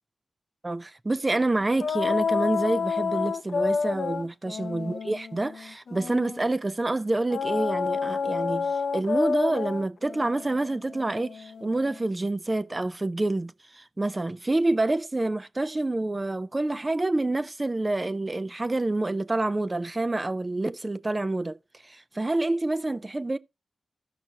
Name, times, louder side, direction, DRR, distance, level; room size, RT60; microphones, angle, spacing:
voice 1, 0.6-21.6 21.8-23.4, right 2 dB, 25° right, 0.6 m, -27 dB
sound 1, 1.8-6.4 7.3-12.0, left 5 dB, 70° left, 0.5 m, -29 dB
15.5 x 6.0 x 2.8 m
cardioid pair, 70°, 0 cm